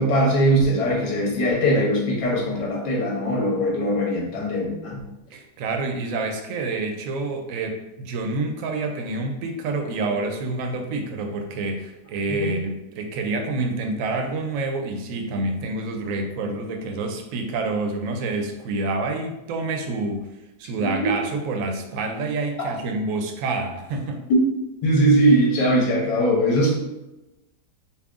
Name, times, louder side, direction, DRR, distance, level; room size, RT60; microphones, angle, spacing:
voice 1, 0.0-5.0 12.4-12.5 20.8-21.1 24.3-24.4 24.8-26.7, right 1 dB, 85° left, -2 dB, 1.6 m, -20 dB
voice 2, 5.3-20.3 20.6-24.2, right 3 dB, 65° right, 4 dB, 0.8 m, -28 dB
5.5 x 2.3 x 2.4 m, 0.99 s
omnidirectional pair, 1.8 m